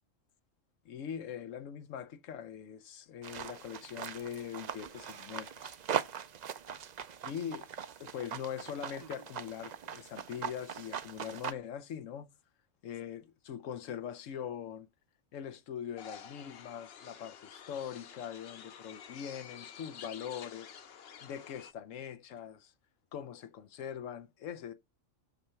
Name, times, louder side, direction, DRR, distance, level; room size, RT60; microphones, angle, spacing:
voice 1, 0.8-5.8 7.2-7.7 8.0-12.3 12.8-14.9 15.3-20.7 21.2-22.7 23.1-24.7, left 8 dB, 85° left, 1.1 m, -42 dB
sound 1, 3.2-11.5, right 8 dB, 55° right, 0.4 m, -40 dB
sound 2, 16.0-21.7, left 7 dB, 60° left, 0.9 m, -50 dB
6.4 x 5.7 x 6.9 m
omnidirectional pair, 1.3 m